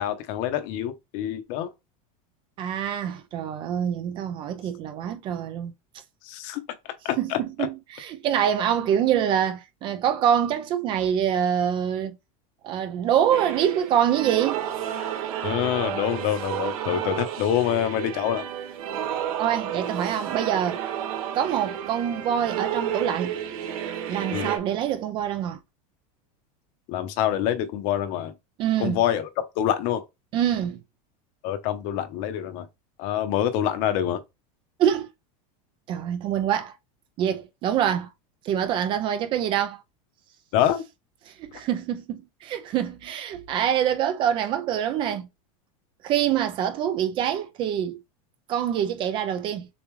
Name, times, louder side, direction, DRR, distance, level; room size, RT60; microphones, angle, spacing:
voice 1, 0.0-1.7 6.2-6.6 7.0-7.4 15.4-18.5 24.3-24.5 26.9-28.3 28.8-30.0 31.4-32.7 33.0-34.2 40.5-40.8, left 11 dB, 40° left, 0.9 m, -26 dB
voice 2, 2.6-5.7 7.2-7.3 7.6-12.2 12.6-14.6 19.4-20.8 21.3-23.3 24.1-25.6 28.6-29.0 30.3-30.8 34.8-35.1 35.9-36.8 37.2-38.1 38.4-39.8 41.3-45.3 46.0-48.0 48.5-49.7, right 9 dB, 25° right, 0.5 m, -25 dB
sound 1, 13.3-24.6, right 9 dB, 80° right, 1.8 m, -31 dB
6.9 x 2.4 x 3.2 m
supercardioid pair, 170°, 18 cm